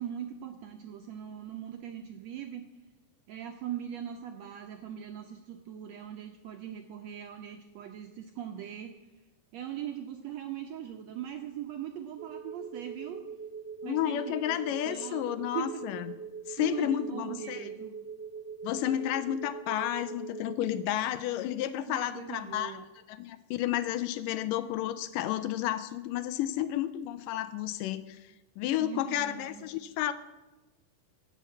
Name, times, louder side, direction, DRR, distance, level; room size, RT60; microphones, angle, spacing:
voice 1, 0.0-2.7 3.3-9.0 9.5-13.2 13.8-14.6 14.8-15.9 16.6-18.0 21.9-22.9 28.8-29.7, right 10 dB, 75° right, 4 dB, 1.6 m, -40 dB
sound 1, 12.2-20.8, right 6 dB, 55° right, 1.9 m, -42 dB
voice 2, 13.8-16.1 16.5-17.7 18.6-22.7 23.1-28.2 28.6-30.1, left 12 dB, 85° left, 13 dB, 2.3 m, -31 dB
16.5 x 5.8 x 8.4 m, 1.1 s
omnidirectional pair, 3.9 m